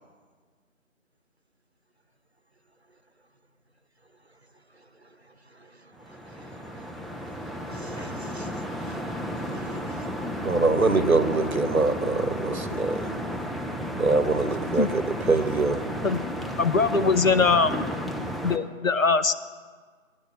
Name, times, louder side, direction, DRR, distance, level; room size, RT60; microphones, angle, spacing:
voice 1, 5.5-10.7, right 2 dB, 50° right, 10 dB, 0.9 m, -49 dB
sound 1, 5.9-18.6, equal, ahead, 0.4 m, -33 dB
voice 2, 10.4-13.1 14.0-15.8, right 3 dB, 85° right, 11 dB, 1.0 m, -24 dB
sound 2, 10.6-14.7, left 2 dB, 55° left, 1.2 m, -38 dB
voice 3, 16.6-17.8 18.4-19.3, left 4 dB, 75° left, 11 dB, 0.8 m, -22 dB
17.0 x 10.0 x 3.2 m, 1.5 s
figure-of-eight pair, 175°, 41 cm